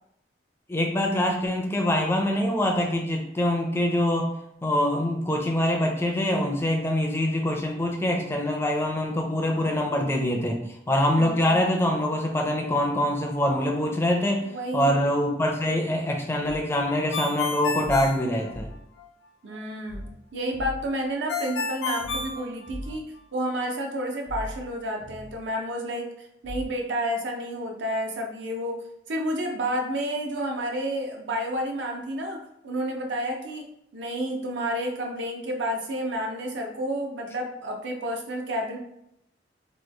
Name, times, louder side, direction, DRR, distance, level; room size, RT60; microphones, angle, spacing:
voice 1, 0.7-4.3 4.6-14.4 14.7-18.7, left 1 dB, 15° left, 2 dB, 0.4 m, -24 dB
voice 2, 11.1-11.6 14.4-15.0 19.4-20.0 20.3-23.0 23.3-28.8 29.1-32.4 32.6-33.7 33.9-38.8, equal, 80° right, 2 dB, 0.6 m, -30 dB
sound 1, 16.4-16.7 17.8-18.2 18.5-18.9 19.9-20.2 20.5-21.0 22.0-23.1 24.3-25.5 26.4-26.7, left 1 dB, 55° right, 0.9 m, -39 dB
Ringtone, 17.1-19.0 21.3-23.2, left 4 dB, 75° left, 0.4 m, -31 dB
3.0 x 2.2 x 3.3 m, 0.79 s
head